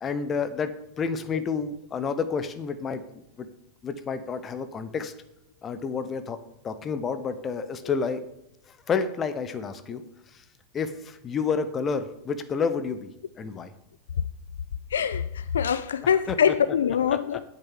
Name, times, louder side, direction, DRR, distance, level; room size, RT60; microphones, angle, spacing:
voice 1, 0.0-3.0 3.4-3.5 3.8-5.1 5.6-6.4 6.6-8.3 8.7-10.0 10.3-10.4 10.7-13.1 13.4-13.7 16.0-16.5 17.3-17.4, left 5 dB, 25° left, 0.9 m, -30 dB
voice 2, 14.9-17.4, left 8 dB, 65° left, 0.3 m, -24 dB
8.2 x 6.8 x 7.3 m
figure-of-eight pair, 90°, 0 cm